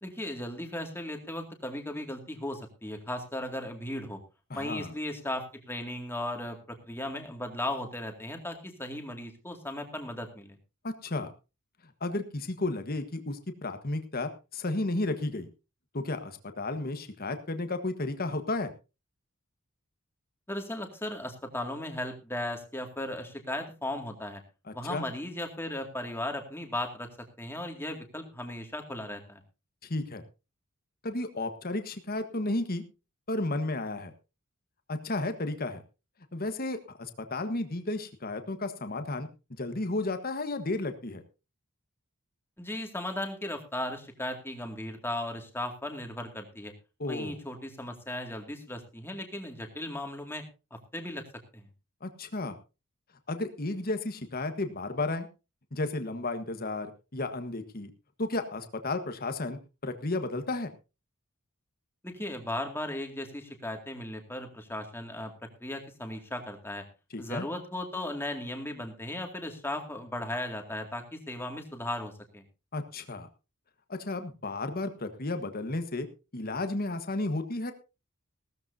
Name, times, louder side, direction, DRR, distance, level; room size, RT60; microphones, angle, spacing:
voice 1, 0.0-4.2 4.5-10.6 20.5-24.4 24.7-27.1 27.4-29.4 42.6-46.7 47.1-50.4 50.9-51.2 51.5-51.7 62.0-65.3 65.6-66.8 67.2-72.4, left 1 dB, 10° left, 4 dB, 2.2 m, -36 dB
voice 2, 4.5-4.9 10.8-11.3 12.0-15.5 15.9-18.7 24.7-25.1 29.8-30.2 31.0-32.8 33.3-34.1 34.9-35.8 36.3-39.3 39.6-41.2 47.0-47.4 52.0-52.6 53.3-55.3 55.7-57.9 58.2-60.7 67.1-67.5 72.7-73.3 73.9-76.1 76.3-77.7, left 2 dB, 40° left, 8 dB, 1.4 m, -33 dB
17.5 x 13.5 x 2.7 m, 0.30 s
head